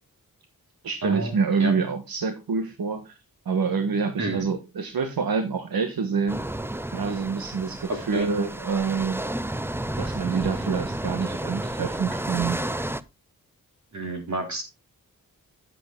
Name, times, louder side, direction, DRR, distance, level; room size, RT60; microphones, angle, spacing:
voice 1, 0.8-3.2 3.4-6.4 6.9-9.3 10.0-12.6, right 5 dB, 85° right, 7 dB, 1.3 m, -26 dB
sound 1, 6.3-13.0, right 1 dB, 5° right, 0.6 m, -31 dB
voice 2, 7.9-8.3 13.9-14.6, right 2 dB, 55° right, 3 dB, 3.6 m, -29 dB
9.9 x 7.7 x 3.7 m, 0.24 s
cardioid pair, 65°, 35 cm